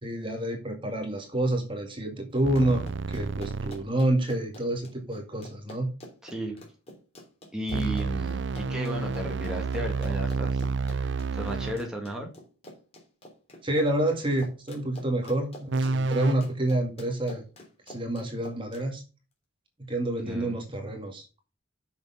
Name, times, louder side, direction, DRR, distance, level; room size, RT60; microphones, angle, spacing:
voice 1, 0.0-5.9 13.6-17.4 17.9-19.0 19.9-21.3, right 1 dB, 25° right, 3 dB, 2.1 m, -28 dB
Run, 2.4-18.8, equal, 30° left, 3.2 m, -47 dB
sound 1, 2.4-3.9 7.7-11.9 15.7-16.3, right 4 dB, 60° right, 0.5 m, -30 dB
voice 2, 6.2-6.6 7.5-12.3 20.3-20.7, equal, 5° right, 0 dB, 1.9 m, -35 dB
6.9 x 6.6 x 5.6 m, 0.32 s
head